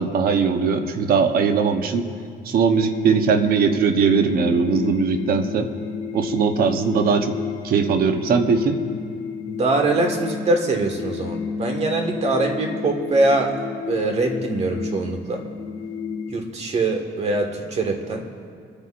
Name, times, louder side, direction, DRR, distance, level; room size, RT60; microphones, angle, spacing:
voice 1, 0.0-2.1 2.4-5.7 6.1-7.4 7.6-8.8, right 5 dB, 60° right, 7 dB, 1.0 m, -20 dB
sound 1, 2.7-16.4, left 6 dB, 40° left, 1.1 m, -32 dB
voice 2, 9.5-13.5 13.9-15.4 16.3-18.3, right 2 dB, 40° right, 2 dB, 1.7 m, -23 dB
28.0 x 9.8 x 2.6 m, 2.2 s
cardioid pair, 110°, 17 cm